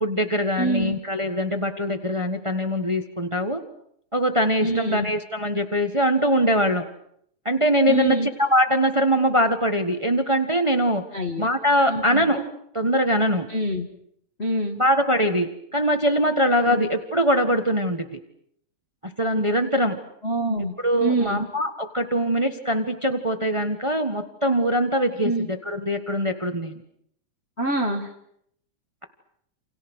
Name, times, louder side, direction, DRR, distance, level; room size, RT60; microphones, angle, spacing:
voice 1, 0.0-3.6 4.1-6.8 7.4-11.0 11.4-12.4 12.7-13.5 14.8-18.2 19.2-20.0 20.8-26.8, equal, 30° right, 7 dB, 0.5 m, -22 dB
voice 2, 0.6-1.0 4.6-5.1 7.9-8.3 11.1-11.5 11.9-12.3 13.5-13.9 14.4-14.8 16.7-16.9 20.2-20.7 21.0-21.4 25.2-25.5 27.6-28.1, right 1 dB, 25° left, 2 dB, 1.5 m, -25 dB
29.0 x 28.0 x 6.4 m, 0.70 s
omnidirectional pair, 3.4 m